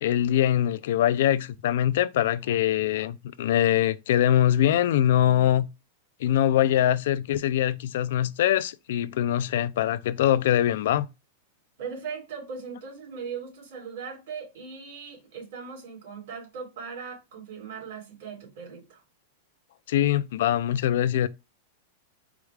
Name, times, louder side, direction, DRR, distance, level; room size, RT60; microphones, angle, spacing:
voice 1, 0.0-5.7 6.2-11.1 19.9-21.3, left 11 dB, 65° left, 0.3 m, -23 dB
voice 2, 11.8-19.0, right 6 dB, 70° right, 2.5 m, -39 dB
4.7 x 2.3 x 4.7 m
supercardioid pair, 155°, 0 cm